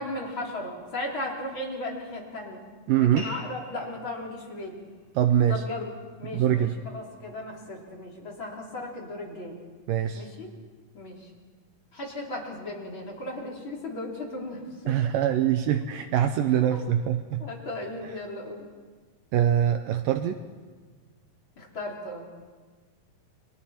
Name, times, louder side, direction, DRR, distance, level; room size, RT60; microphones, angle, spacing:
voice 1, 0.0-2.6 3.0-4.8 5.5-5.9 6.2-9.6 10.1-10.5 10.9-11.2 11.9-15.0 16.6-16.9 17.4-18.6 21.6-22.3, left 1 dB, 35° left, -2 dB, 4.2 m, -36 dB
voice 2, 2.9-3.3 5.2-5.6 6.3-6.8 9.9-10.3 14.9-17.4 19.3-20.4, right 10 dB, 75° right, 8 dB, 2.3 m, -23 dB
sound 1, 3.2-8.2, left 1 dB, 50° right, 7.0 m, -48 dB
29.5 x 23.5 x 4.4 m, 1.4 s
omnidirectional pair, 4.2 m